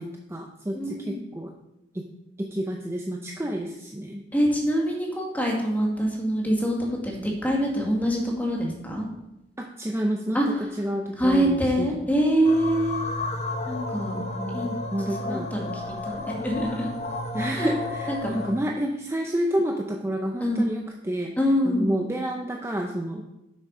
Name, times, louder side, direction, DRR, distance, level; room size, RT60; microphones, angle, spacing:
voice 1, 0.0-1.5 1.9-2.1 2.4-4.2 9.6-12.1 14.4-15.5 17.3-21.3 21.6-23.2, equal, 15° right, 2 dB, 0.6 m, -29 dB
voice 2, 0.7-1.2 4.3-9.1 10.3-10.5 11.2-13.1 13.7-14.2 14.5-15.7 16.1-16.9 17.5-17.7 18.1-18.4 20.4-20.7 21.4-22.0, equal, 10° left, -1 dB, 1.9 m, -25 dB
sound 1, 12.4-18.6, left 2 dB, 35° left, 1.0 m, -32 dB
7.7 x 6.4 x 5.4 m, 0.93 s
head